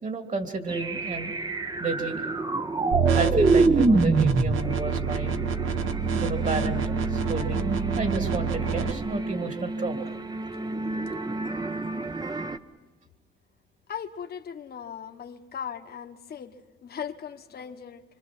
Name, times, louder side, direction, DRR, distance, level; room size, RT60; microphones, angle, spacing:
voice 1, 0.0-1.3 1.8-2.2 3.1-5.4 6.2-10.1, right 3 dB, 40° right, 5 dB, 2.7 m, -32 dB
sound 1, 0.7-12.6, right 3 dB, 20° right, 1.0 m, -27 dB
sound 2, 2.9-8.9, right 6 dB, 85° right, 1.2 m, -28 dB
voice 2, 13.9-18.0, left 8 dB, 50° left, 5 dB, 1.4 m, -38 dB
26.0 x 25.5 x 6.1 m, 1.2 s
cardioid pair, 90°, 20 cm